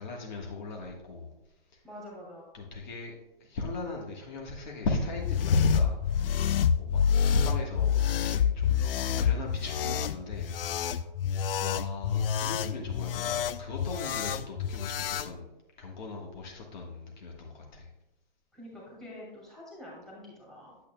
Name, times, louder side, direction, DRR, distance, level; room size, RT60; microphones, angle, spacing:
voice 1, 0.0-1.3 1.7-1.8 2.5-3.1 3.4-6.4 6.8-8.8 9.2-10.6 10.9-11.1 11.6-15.5 15.8-17.9, left 2 dB, 50° left, 0 dB, 1.4 m, -35 dB
voice 2, 1.8-2.5 18.5-20.8, left 1 dB, ahead, -5 dB, 2.3 m, -46 dB
sound 1, 5.1-15.3, left 8 dB, 70° left, 0.5 m, -28 dB
8.7 x 8.5 x 2.2 m, 0.90 s
hypercardioid pair, 150°, 29 cm